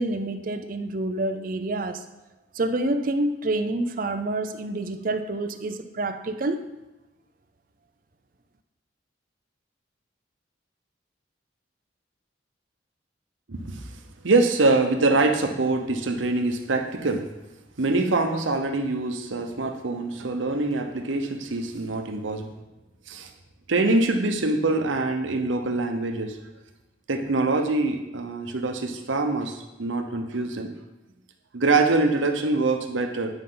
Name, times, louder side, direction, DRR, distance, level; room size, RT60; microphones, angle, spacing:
voice 1, 0.0-2.0 2.5-6.6, right 2 dB, 45° right, 9 dB, 0.5 m, -27 dB
voice 2, 13.5-13.8 14.2-17.2 17.8-22.5 23.1-23.3 23.7-26.4 27.1-30.7 31.5-33.3, right 3 dB, 90° right, 5 dB, 0.9 m, -24 dB
9.7 x 5.3 x 3.9 m, 1.0 s
head